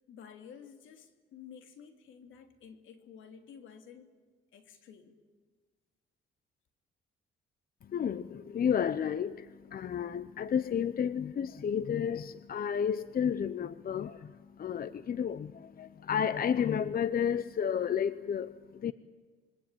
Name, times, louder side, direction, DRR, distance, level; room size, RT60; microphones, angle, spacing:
voice 1, 0.0-4.2 4.5-5.2, left 7 dB, 80° left, 3.0 m, -52 dB
voice 2, 7.8-18.9, left 8 dB, 50° left, 0.8 m, -32 dB
26.5 x 23.0 x 9.2 m
cardioid pair, 90°, 20 cm